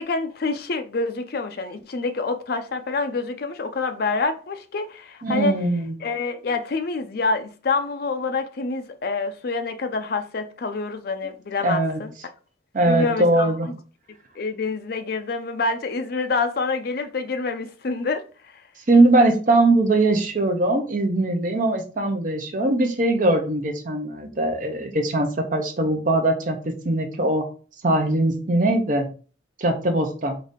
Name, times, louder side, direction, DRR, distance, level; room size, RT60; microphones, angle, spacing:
voice 1, 0.0-5.6 6.0-12.1 12.9-13.7 14.3-18.6, left 4 dB, 55° left, 0.5 m, -27 dB
voice 2, 5.2-5.9 11.6-12.0 12.7-13.7 18.9-26.6 26.8-27.4 27.8-29.1 29.6-30.4, right 2 dB, 45° right, 0.7 m, -21 dB
3.9 x 2.7 x 3.6 m
head